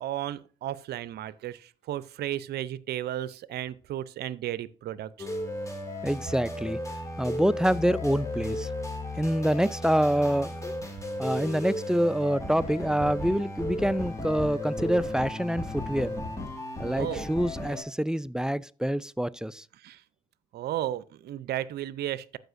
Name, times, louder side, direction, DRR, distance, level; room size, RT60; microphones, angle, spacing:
voice 1, 0.0-5.3 16.8-17.2 19.8-20.0 20.5-22.4, right 12 dB, 65° right, 0.5 m, -34 dB
sound 1, 5.2-17.8, left 1 dB, 15° left, 2.4 m, -35 dB
voice 2, 6.0-6.8 7.2-8.7 9.2-10.7 11.2-16.1 16.8-19.6, equal, 5° right, 0.4 m, -26 dB
14.0 x 5.0 x 2.6 m
hypercardioid pair, 50°, 18 cm